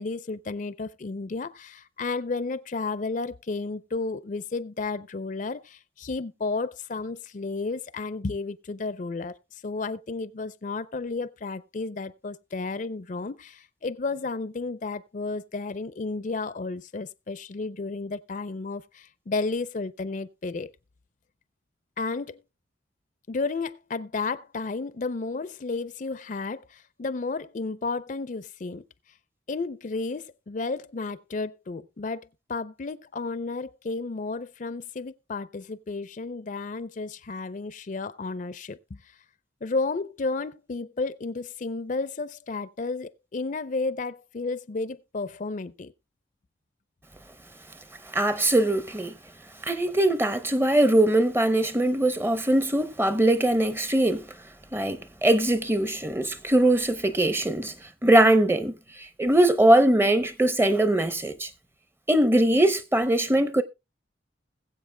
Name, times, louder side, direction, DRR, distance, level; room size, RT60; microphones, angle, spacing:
voice 1, 0.0-20.7 22.0-22.4 23.3-28.8 29.5-39.0 39.6-45.9, left 3 dB, 45° left, 0.4 m, -32 dB
voice 2, 48.1-49.1 49.6-54.3 54.7-57.7 58.0-61.5 62.1-63.6, right 1 dB, 10° right, 0.6 m, -21 dB
21.0 x 7.8 x 2.2 m
head